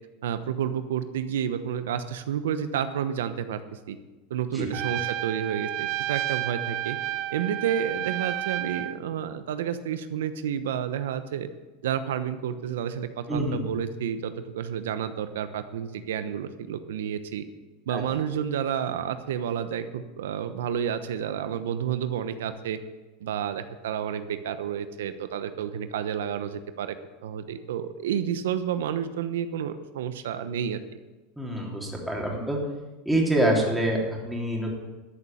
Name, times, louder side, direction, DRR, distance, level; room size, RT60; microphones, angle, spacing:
voice 1, 0.2-4.0 4.3-7.0 7.3-11.5 11.8-17.4 17.9-22.8 23.2-26.9 27.2-30.8, right 9 dB, 85° right, 11 dB, 1.0 m, -30 dB
Trumpet, 4.7-9.0, right 15 dB, 50° right, 0.5 m, -31 dB
voice 2, 13.3-13.6 17.9-18.0 31.4-32.6 33.1-34.7, right 1 dB, 5° right, -2 dB, 3.4 m, -26 dB
13.0 x 6.9 x 9.0 m, 1.2 s
supercardioid pair, 115°, 0 cm